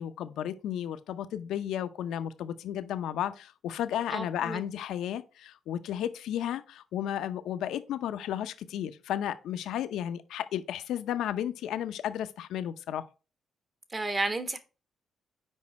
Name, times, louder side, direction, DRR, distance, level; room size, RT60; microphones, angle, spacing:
voice 1, 0.0-13.1, left 10 dB, 80° left, 0.7 m, -33 dB
voice 2, 4.1-4.6 13.9-14.6, right 2 dB, 25° right, 1.2 m, -32 dB
6.4 x 4.9 x 4.2 m
cardioid pair, 90°, 0 cm